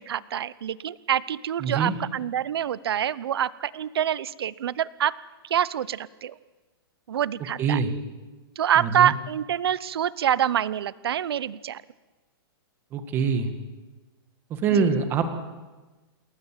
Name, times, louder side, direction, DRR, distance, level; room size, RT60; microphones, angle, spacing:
voice 1, 0.0-5.2 5.5-6.4 7.1-7.8 8.6-11.8 14.7-14.9, right 10 dB, 75° right, 19 dB, 0.9 m, -26 dB
voice 2, 1.6-2.0 7.6-7.9 8.8-9.1 12.9-13.5 14.5-15.3, right 6 dB, 15° right, 8 dB, 1.7 m, -24 dB
28.5 x 21.0 x 7.6 m, 1.2 s
hypercardioid pair, 180°, 13 cm